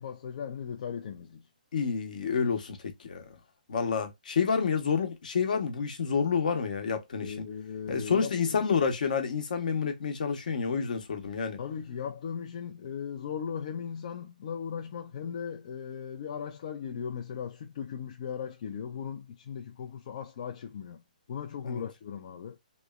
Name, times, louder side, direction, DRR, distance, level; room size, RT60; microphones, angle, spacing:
voice 1, 0.0-1.4 7.2-8.6 11.6-21.0 21.3-22.6, left 7 dB, 50° left, 0.4 m, -38 dB
voice 2, 1.7-3.2 3.7-7.5 7.9-11.6 21.6-21.8, left 6 dB, 65° left, 0.8 m, -29 dB
2.9 x 2.0 x 2.2 m
hypercardioid pair, 145°, 5 cm